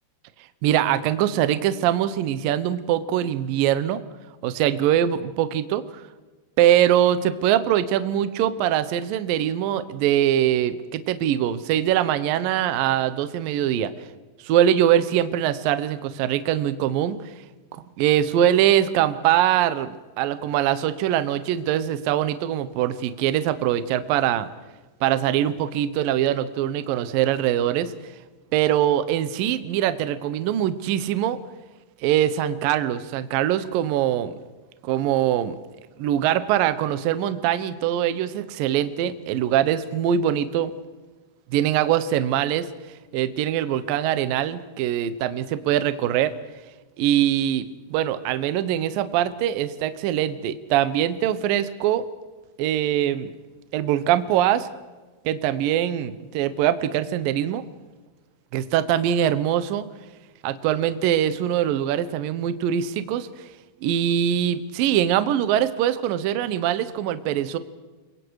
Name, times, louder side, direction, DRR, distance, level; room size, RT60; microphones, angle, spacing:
voice 1, 0.6-4.0 4.4-6.0 6.6-13.9 14.4-17.3 17.7-24.5 25.0-27.9 28.5-31.4 32.0-34.4 34.8-35.6 36.0-40.7 41.5-42.7 43.1-46.3 47.0-47.7 47.9-52.0 52.6-53.3 53.7-54.7 55.2-57.6 58.5-59.9 60.4-63.3 63.8-67.6, right 11 dB, 75° right, 12 dB, 2.1 m, -22 dB
29.5 x 22.5 x 4.8 m, 1.3 s
omnidirectional pair, 5.5 m